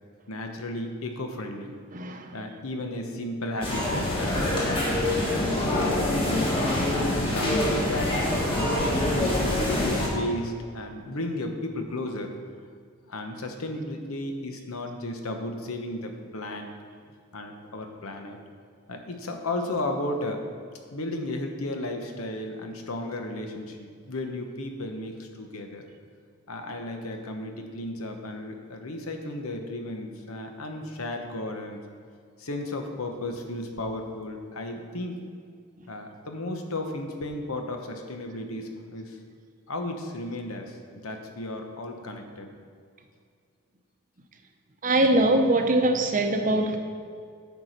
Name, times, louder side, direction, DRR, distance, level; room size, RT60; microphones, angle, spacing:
voice 1, 0.3-1.8 2.3-5.1 5.4-6.2 6.9-12.3 13.1-16.7 17.3-18.4 18.9-20.5 20.9-25.9 26.5-31.8 32.4-35.2 35.9-39.2 39.7-42.5, left 1 dB, 80° left, 4 dB, 1.0 m, -34 dB
voice 2, 1.9-2.2 44.8-46.8, right 1 dB, 40° right, 5 dB, 0.7 m, -22 dB
sound 1, 3.6-10.1, left 1 dB, 25° left, 1.6 m, -25 dB
9.8 x 4.7 x 6.7 m, 2.2 s
head